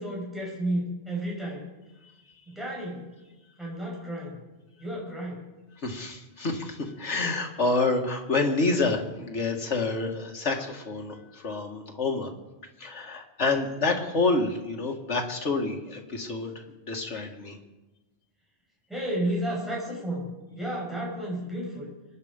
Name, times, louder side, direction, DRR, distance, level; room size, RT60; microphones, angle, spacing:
voice 1, 0.0-1.7 2.5-3.1 3.6-4.4 4.8-5.5 18.9-21.9, right 1 dB, ahead, -4 dB, 5.9 m, -32 dB
voice 2, 5.8-12.3 12.8-16.5 16.8-17.6, left 3 dB, 90° left, 2 dB, 2.2 m, -28 dB
24.5 x 10.0 x 5.2 m, 1.1 s
omnidirectional pair, 1.2 m